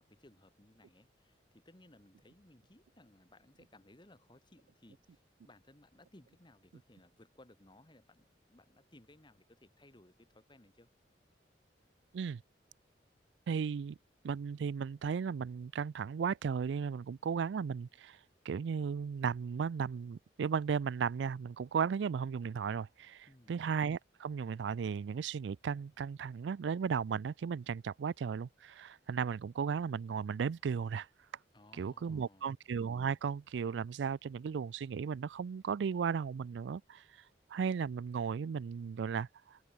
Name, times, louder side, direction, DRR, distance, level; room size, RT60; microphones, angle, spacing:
voice 1, 0.0-10.9 23.3-23.6 31.5-32.6, left 1 dB, 25° left, 2.2 m, -61 dB
voice 2, 13.5-14.0 14.2-18.2 18.5-31.1 31.7-37.0 37.5-39.6, right 6 dB, 80° right, 0.4 m, -35 dB
head